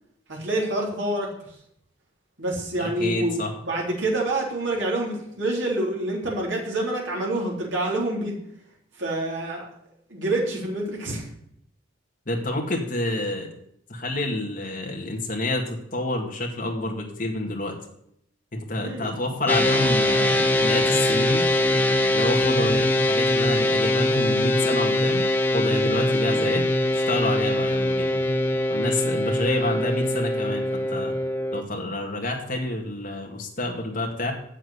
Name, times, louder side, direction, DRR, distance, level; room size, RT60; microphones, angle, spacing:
voice 1, 0.3-1.6 2.4-8.3 8.9-9.7 10.1-11.3 18.8-19.1 26.2-26.5 29.6-29.8, right 1 dB, 65° right, -2 dB, 3.7 m, -27 dB
voice 2, 2.8-3.5 12.3-13.5 13.9-17.8 18.5-21.5 22.1-25.3 25.5-26.6 26.9-28.1 28.7-31.1 31.5-34.3, left 1 dB, 45° left, 1 dB, 2.1 m, -28 dB
sound 1, 19.5-31.6, left 1 dB, 10° left, 0.8 m, -22 dB
7.6 x 7.5 x 8.2 m, 0.72 s
head